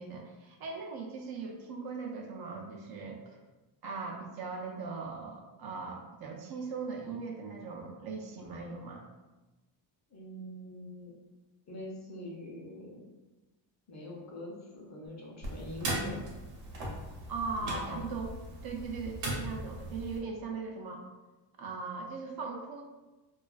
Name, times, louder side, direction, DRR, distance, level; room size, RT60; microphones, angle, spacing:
voice 1, 0.0-3.4 3.8-9.0 17.3-18.3 18.6-21.0 21.6-22.8, right 4 dB, 60° right, 1 dB, 0.5 m, -39 dB
voice 2, 10.1-11.1 11.7-13.0 13.9-16.2 17.6-18.0, left 1 dB, 40° left, -2 dB, 0.7 m, -43 dB
sound 1, 15.4-20.2, right 1 dB, 75° right, 0.9 m, -39 dB
2.4 x 2.2 x 2.3 m, 1.1 s
cardioid pair, 100°, 44 cm